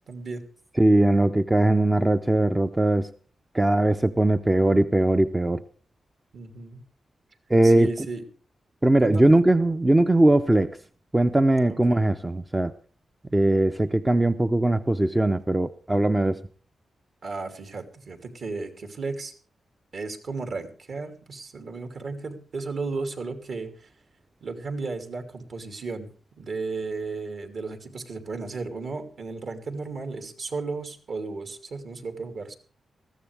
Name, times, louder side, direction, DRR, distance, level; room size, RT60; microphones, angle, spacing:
voice 1, 0.1-0.4 6.3-6.8 7.6-8.2 9.0-9.4 11.9-12.0 17.2-19.3 19.9-23.9 24.4-26.1 26.4-32.5, right 3 dB, 55° right, 6 dB, 2.9 m, -34 dB
voice 2, 0.8-3.1 3.5-5.6 7.5-7.9 8.8-10.7 11.1-12.7 13.3-16.4, right 1 dB, 15° right, 9 dB, 0.6 m, -20 dB
20.5 x 15.0 x 3.4 m, 0.41 s
wide cardioid pair, 140°, 0 cm